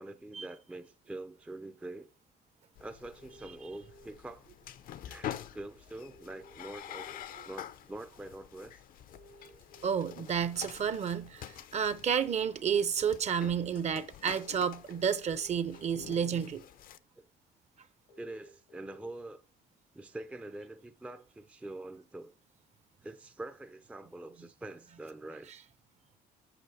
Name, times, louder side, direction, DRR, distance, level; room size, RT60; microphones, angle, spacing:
voice 1, 0.0-2.1 2.8-4.4 5.0-7.1 7.4-8.8 17.2-17.3 18.2-19.4 20.0-22.3 23.0-25.5, right 2 dB, 5° right, 0.4 m, -45 dB
sound 1, 2.8-17.0, left 11 dB, 55° left, 0.5 m, -47 dB
sound 2, 3.2-4.1 6.1-7.1 9.1-10.1 12.1-13.1 15.1-16.1 18.1-19.1, right 1 dB, 85° left, 1.5 m, -56 dB
voice 2, 9.8-16.6, right 7 dB, 40° right, 0.7 m, -31 dB
8.1 x 6.2 x 4.8 m
cardioid pair, 110°, 17 cm